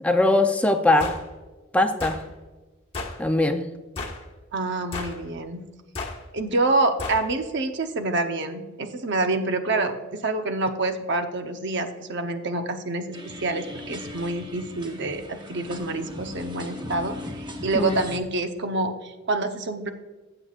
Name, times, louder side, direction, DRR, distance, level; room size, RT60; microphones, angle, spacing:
voice 1, 0.0-1.1 1.7-2.2 3.2-3.6 17.7-18.0, left 2 dB, 5° left, 6 dB, 0.5 m, -21 dB
sound 1, 1.0-1.2 2.0-2.2 2.9-3.2 4.0-4.2 4.9-5.2 5.9-6.2 7.0-7.2, left 3 dB, 30° left, 1.5 m, -32 dB
voice 2, 4.5-5.6 6.3-19.9, right 2 dB, 60° right, 7 dB, 0.9 m, -27 dB
sound 2, 13.1-18.2, left 1 dB, 25° right, 1.0 m, -38 dB
15.5 x 7.7 x 2.5 m, 1.2 s
head